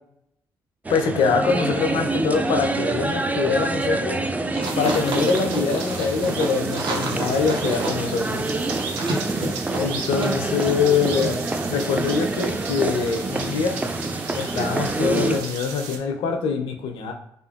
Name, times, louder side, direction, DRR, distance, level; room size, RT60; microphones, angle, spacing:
sound 1, 0.8-15.4, right 2 dB, 15° right, 0.4 m, -26 dB
voice 1, 0.9-4.3 4.8-8.6 9.7-11.4 11.7-13.8 14.4-17.1, left 5 dB, 75° left, 5 dB, 0.4 m, -24 dB
sound 2, 4.5-10.4 10.6-10.7, right 2 dB, 60° right, 0.8 m, -30 dB
sound 3, 4.6-16.0, right 5 dB, 85° right, 0.4 m, -36 dB
2.8 x 2.3 x 2.2 m, 0.78 s
hypercardioid pair, 45°, 9 cm